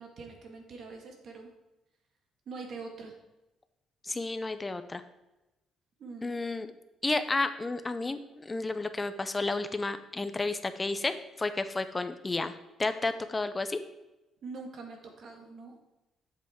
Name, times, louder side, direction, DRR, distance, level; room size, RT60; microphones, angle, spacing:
voice 1, 0.0-1.5 2.4-3.1 6.0-6.4 14.4-15.8, right 4 dB, 50° right, 2 dB, 1.8 m, -44 dB
voice 2, 4.0-5.0 6.2-6.7 7.0-12.5 12.8-13.8, left 3 dB, 15° left, 10 dB, 0.5 m, -31 dB
8.9 x 7.6 x 3.6 m, 0.99 s
cardioid pair, 145°, 0 cm